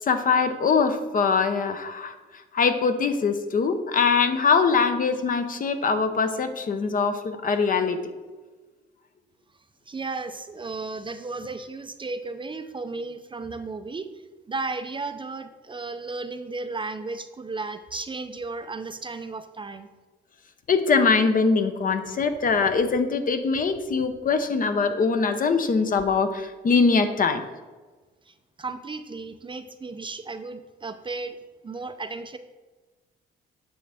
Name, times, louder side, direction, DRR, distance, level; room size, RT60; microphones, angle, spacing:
voice 1, 0.1-2.1 2.5-8.1 20.7-27.4, left 5 dB, 45° left, 8 dB, 0.8 m, -22 dB
voice 2, 9.9-14.1 14.5-19.9 28.3-31.4 31.6-32.4, right 3 dB, 25° right, 9 dB, 0.5 m, -34 dB
9.1 x 6.1 x 3.4 m, 1.3 s
cardioid pair, 90°, 20 cm